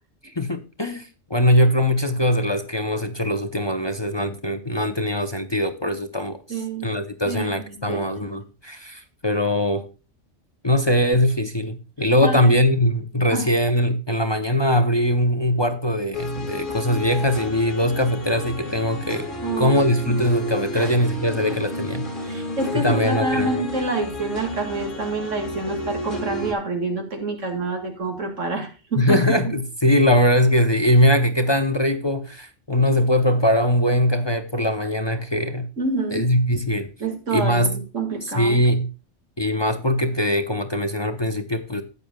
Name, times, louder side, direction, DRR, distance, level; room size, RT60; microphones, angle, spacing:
voice 1, 0.2-9.9 10.6-19.3 19.6-22.1 22.7-23.6 29.0-35.7 36.1-36.9 37.3-37.8 38.3-38.9 39.4-41.8, left 1 dB, 25° left, 0.8 m, -21 dB
voice 2, 6.5-6.9 7.3-7.5 7.9-8.3 12.2-12.6 13.3-13.5 19.4-19.8 20.1-20.2 20.7-20.9 22.2-29.6 35.8-36.3 37.0-38.6, right 2 dB, 90° right, 2.6 m, -27 dB
sound 1, 16.1-26.5, equal, 45° left, 2.4 m, -31 dB
13.5 x 9.3 x 2.3 m
omnidirectional pair, 1.2 m